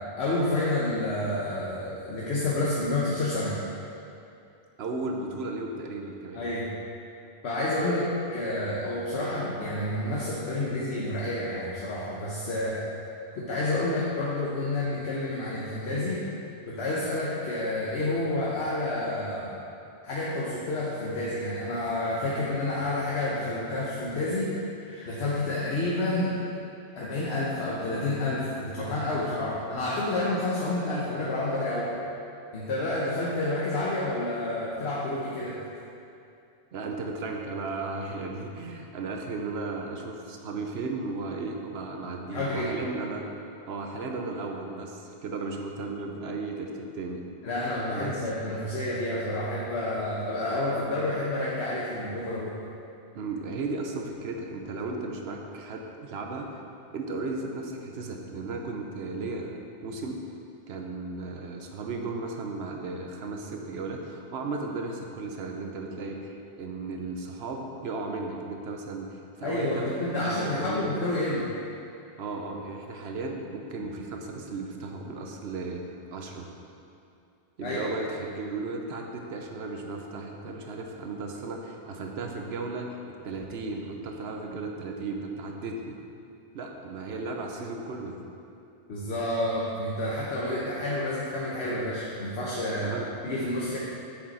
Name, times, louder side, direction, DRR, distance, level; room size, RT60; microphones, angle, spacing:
voice 1, 0.2-3.6 6.3-6.7 7.4-12.8 13.3-16.2 16.7-19.5 20.0-26.3 27.0-31.9 32.5-35.6 42.3-42.7 47.4-52.5 69.4-71.5 73.8-73.9 77.6-77.9 88.9-92.9 93.2-93.8, left 2 dB, 70° left, -6 dB, 1.2 m, -29 dB
voice 2, 4.8-6.4 36.7-43.3 43.7-47.2 47.9-48.2 53.1-56.5 56.9-59.5 59.8-60.2 60.7-70.8 72.2-76.5 77.6-85.9 86.5-88.2 92.8-93.1, right 3 dB, 70° right, 2 dB, 1.0 m, -35 dB
7.7 x 6.5 x 4.2 m, 2.6 s
omnidirectional pair, 1.2 m